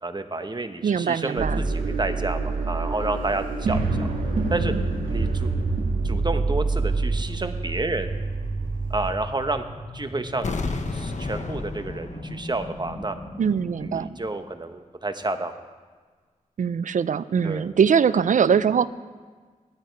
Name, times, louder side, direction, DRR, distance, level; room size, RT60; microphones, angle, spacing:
voice 1, 0.0-4.1 4.5-4.7 5.1-5.5 6.0-8.1 8.9-9.6 9.9-10.6 10.9-13.2 13.8-15.6 17.4-17.7, right 2 dB, 30° right, 8 dB, 1.1 m, -30 dB
voice 2, 0.8-1.6 13.4-14.1 16.6-18.9, right 7 dB, 65° right, 17 dB, 0.5 m, -22 dB
sound 1, 1.4-9.1, right 3 dB, 85° right, 1.6 m, -26 dB
sound 2, 7.9-14.1, left 1 dB, 25° left, 2.7 m, -39 dB
sound 3, 10.4-13.3 13.6-13.7, left 3 dB, 60° left, 1.2 m, -32 dB
16.0 x 12.5 x 4.7 m, 1.5 s
cardioid pair, 50°, 14 cm